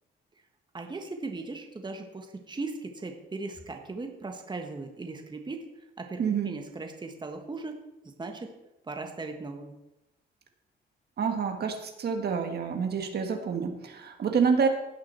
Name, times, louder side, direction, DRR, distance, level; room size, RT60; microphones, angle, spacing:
voice 1, 0.7-5.6 6.0-7.8 8.2-8.5 8.8-9.8, right 3 dB, 20° right, 4 dB, 1.4 m, -38 dB
voice 2, 6.2-6.6 11.2-14.7, right 6 dB, 55° right, 5 dB, 1.5 m, -28 dB
17.0 x 6.1 x 4.3 m, 0.92 s
cardioid pair, 90°, 20 cm